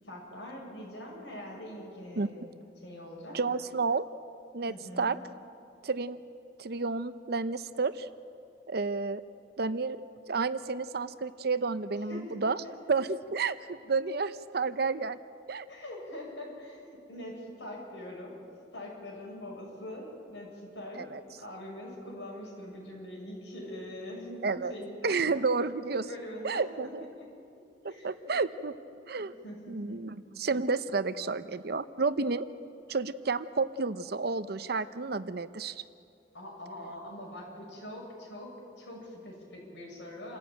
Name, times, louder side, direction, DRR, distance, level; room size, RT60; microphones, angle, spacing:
voice 1, 0.0-2.4 2.8-3.4 4.7-5.2 12.1-12.7 15.7-18.5 18.7-21.1 21.4-25.2 25.6-26.6 27.2-27.3 27.8-28.3 29.1-30.0 36.3-38.5 38.8-40.4, left 1 dB, 80° left, -2 dB, 7.6 m, -43 dB
voice 2, 3.3-4.1 4.5-5.2 5.8-6.2 6.6-8.1 8.7-9.2 9.6-10.0 10.3-12.6 12.9-15.2 15.5-15.7 21.0-21.2 24.4-24.7 25.0-26.0 26.4-27.0 27.8-28.8 29.1-29.3 29.7-32.5 32.9-35.8, right 4 dB, 60° right, 13 dB, 0.7 m, -31 dB
28.0 x 14.0 x 9.0 m, 2.5 s
head